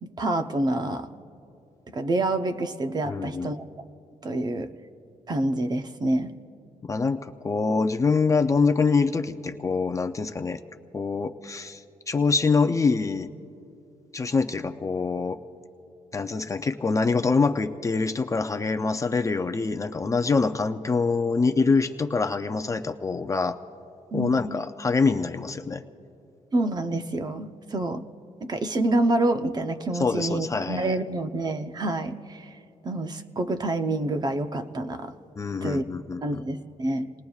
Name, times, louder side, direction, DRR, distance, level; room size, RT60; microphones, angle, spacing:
voice 1, 0.0-1.1 1.9-3.7 4.2-4.7 5.3-6.3 24.1-24.4 26.5-28.0 28.4-32.6 32.8-35.1 35.6-35.8 36.2-37.1, right 2 dB, 30° right, 8 dB, 0.6 m, -27 dB
voice 2, 3.1-3.5 6.8-10.6 10.9-13.3 14.1-15.4 16.1-23.6 24.1-25.8 30.0-31.0 35.4-36.4, left 4 dB, 25° left, 6 dB, 0.5 m, -25 dB
29.0 x 20.0 x 2.4 m, 2.8 s
wide cardioid pair, 160°, 14 cm